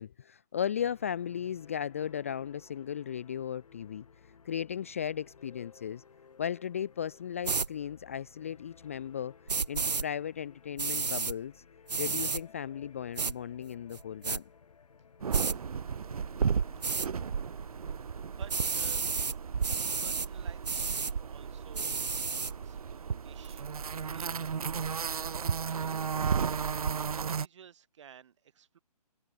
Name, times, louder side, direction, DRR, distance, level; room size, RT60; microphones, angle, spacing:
voice 1, 0.0-4.0 4.5-6.0 6.4-9.4 9.7-11.6 12.0-14.4, left 9 dB, 20° left, 0.4 m, -36 dB
sound 1, 0.8-18.7, left 6 dB, 60° left, 3.8 m, -58 dB
sound 2, 7.4-7.7 9.5-10.0 10.8-11.3 11.9-12.4 13.2-13.3 13.9-14.4 15.3-15.6 16.8-17.1 18.5-19.4 19.6-20.3 20.6-21.1 21.7-22.5, right 4 dB, 85° right, 1.1 m, -31 dB
sound 3, 15.2-27.5, right 6 dB, 65° right, 1.1 m, -34 dB
voice 2, 18.1-19.0 20.0-24.7 25.1-28.8, right 8 dB, 45° right, 3.9 m, -55 dB
figure-of-eight pair, 150°, 21 cm